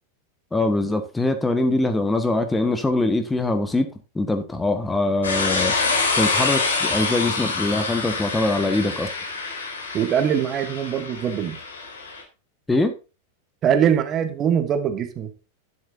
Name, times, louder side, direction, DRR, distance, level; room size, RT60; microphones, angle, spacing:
voice 1, 0.5-3.9 4.1-5.7 6.2-9.1 12.7-13.0, left 2 dB, 10° left, 1.5 m, -23 dB
sound 1, 5.2-12.2, left 4 dB, 70° left, 4.0 m, -26 dB
voice 2, 9.9-11.6 13.6-15.3, right 8 dB, 30° right, 1.7 m, -22 dB
11.5 x 11.0 x 2.7 m
figure-of-eight pair, 90°, 0 cm